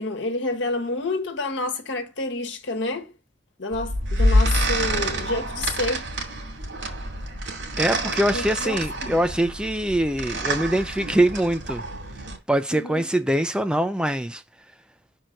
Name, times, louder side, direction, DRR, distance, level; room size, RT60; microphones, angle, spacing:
voice 1, 0.0-3.1 3.6-6.1 8.3-9.2 12.7-13.0, left 2 dB, 80° left, 1.3 m, -29 dB
sound 1, 3.7-12.4, equal, 85° right, 2.4 m, -27 dB
voice 2, 7.8-11.8 12.5-14.4, right 1 dB, 5° right, 0.4 m, -23 dB
5.6 x 4.6 x 6.3 m
head